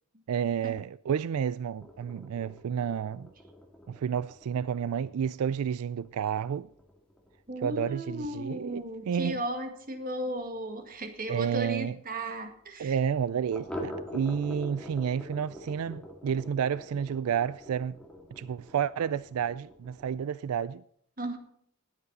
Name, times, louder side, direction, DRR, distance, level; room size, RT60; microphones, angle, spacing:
voice 1, 0.3-3.3 3.9-6.7 7.6-8.8 9.1-9.4 11.3-11.9 12.8-18.0 18.4-20.8, right 8 dB, 85° right, 0.4 m, -30 dB
sound 1, 1.8-11.0 11.3-11.4 11.7-11.8 12.2-12.3 13.5-20.2, equal, 5° left, 2.0 m, -46 dB
voice 2, 7.5-13.0 21.2-21.4, right 1 dB, 40° right, 1.9 m, -35 dB
20.0 x 8.2 x 4.1 m
head